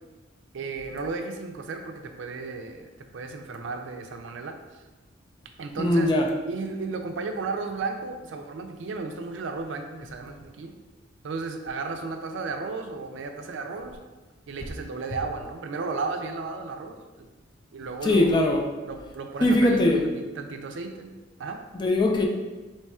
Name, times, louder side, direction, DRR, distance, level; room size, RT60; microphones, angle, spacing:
voice 1, 0.5-4.8 5.6-6.1 6.5-10.7 11.2-14.0 14.5-17.3 17.7-18.4 18.9-21.1 21.4-21.6, right 4 dB, 75° right, 0.4 m, -34 dB
voice 2, 5.8-6.3 18.0-18.6 19.4-20.1 21.7-22.3, left 1 dB, 25° left, 0.3 m, -21 dB
3.1 x 2.3 x 4.2 m
head